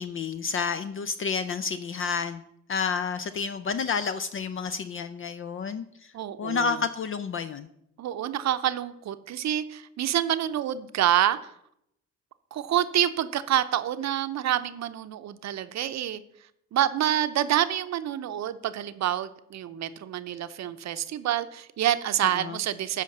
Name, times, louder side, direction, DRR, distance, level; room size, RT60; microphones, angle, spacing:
voice 1, 0.0-2.4 2.7-5.9 6.4-7.7 22.2-22.6, left 5 dB, 45° left, 12 dB, 0.5 m, -30 dB
voice 2, 6.1-6.8 8.0-11.4 12.5-16.2 16.7-23.0, right 11 dB, 65° right, 12 dB, 0.7 m, -27 dB
8.3 x 5.2 x 6.6 m, 0.76 s
cardioid pair, 90°, 30 cm